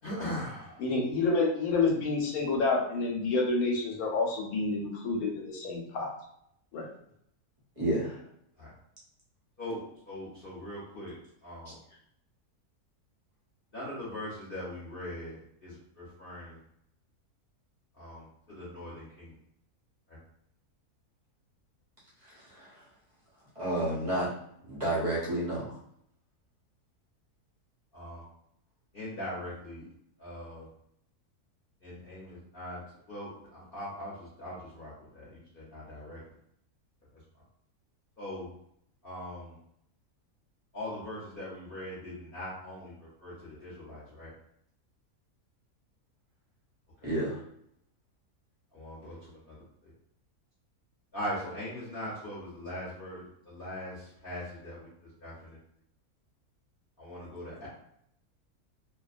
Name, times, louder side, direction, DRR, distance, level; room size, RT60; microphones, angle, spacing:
voice 1, 0.0-0.9 8.6-8.7 9.6-11.2 11.4-11.8 13.7-16.6 17.9-19.3 20.1-20.2 27.9-28.3 28.9-29.9 30.2-30.7 31.8-32.8 33.1-36.2 37.1-37.4 38.2-38.5 39.0-39.6 40.7-44.3 47.0-47.1 48.7-49.9 51.1-55.6 57.0-57.7, left 1 dB, 45° left, -9 dB, 0.8 m, -41 dB
voice 2, 0.8-6.1 6.7-6.9, left 3 dB, 75° left, 0 dB, 1.1 m, -28 dB
voice 3, 7.8-8.2 22.2-22.8 23.6-24.3 24.6-25.8 47.0-47.4, right 1 dB, 45° right, -7 dB, 0.4 m, -31 dB
2.5 x 2.2 x 2.4 m, 0.72 s
omnidirectional pair, 1.6 m